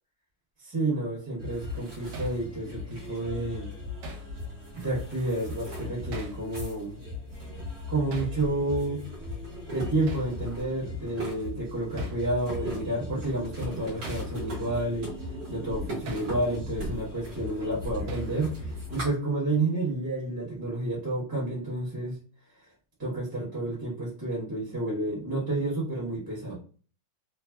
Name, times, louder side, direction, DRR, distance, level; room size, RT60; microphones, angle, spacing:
voice 1, 0.6-3.7 4.7-7.0 7.9-9.0 9.7-15.1 15.5-18.5 18.9-22.2 23.0-26.6, right 2 dB, 15° right, -7 dB, 1.0 m, -30 dB
sound 1, 1.4-19.1, left 1 dB, 50° right, 1.3 m, -37 dB
Hammer, 2.1-2.4 4.0-4.3 6.1-6.4 8.1-8.4 10.1-10.3 12.0-12.2 14.0-14.3 16.1-16.3 18.1-18.4, right 1 dB, 80° right, 1.2 m, -41 dB
3.4 x 2.1 x 2.2 m, 0.40 s
omnidirectional pair, 1.9 m